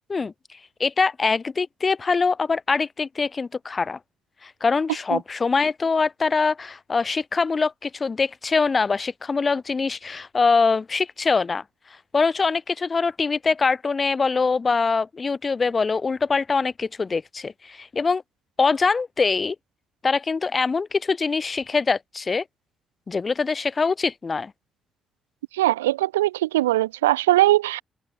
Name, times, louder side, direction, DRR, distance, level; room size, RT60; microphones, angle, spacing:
voice 1, 0.8-4.0 4.4-11.6 12.1-18.2 18.6-19.6 20.0-22.4 23.1-24.5, left 4 dB, 40° left, 2.6 m, -23 dB
voice 2, 25.5-27.8, right 16 dB, 90° right, 0.5 m, -20 dB
hypercardioid pair, 40°, 0 cm